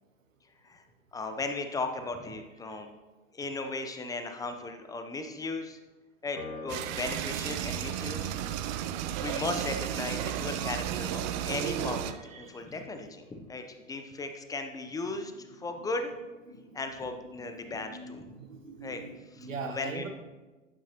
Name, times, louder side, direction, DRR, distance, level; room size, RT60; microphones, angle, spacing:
voice 1, 1.1-2.9 3.3-5.8 6.2-8.3 9.1-16.1 16.7-18.2 18.8-19.0 19.4-20.0, left 3 dB, 10° left, 7 dB, 0.7 m, -36 dB
Piano, 6.4-12.9, left 4 dB, 90° left, 1.0 m, -49 dB
sound 1, 6.7-12.1, right 11 dB, 35° right, 0.5 m, -33 dB
voice 2, 12.2-12.8 15.1-15.3 15.6-16.2 16.5-20.1, right 4 dB, 80° right, 5 dB, 1.1 m, -44 dB
11.0 x 8.8 x 3.0 m, 1.2 s
figure-of-eight pair, 100°, 38 cm